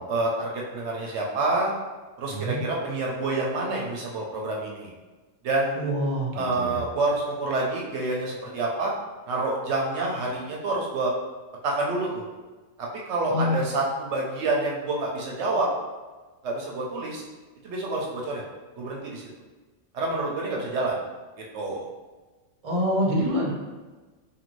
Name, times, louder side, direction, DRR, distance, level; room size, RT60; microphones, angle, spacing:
voice 1, 0.1-1.7 2.2-4.9 5.4-5.9 6.3-8.9 9.3-11.1 11.6-12.2 12.8-15.7 16.4-17.2 17.6-18.4 18.8-19.3 19.9-21.0 21.5-21.9, right 2 dB, 70° right, -2 dB, 0.8 m, -27 dB
voice 2, 2.3-2.6 5.8-6.8 13.3-13.7 22.6-23.5, equal, 40° right, -2 dB, 0.5 m, -26 dB
2.7 x 2.5 x 3.0 m, 1.3 s
omnidirectional pair, 1.3 m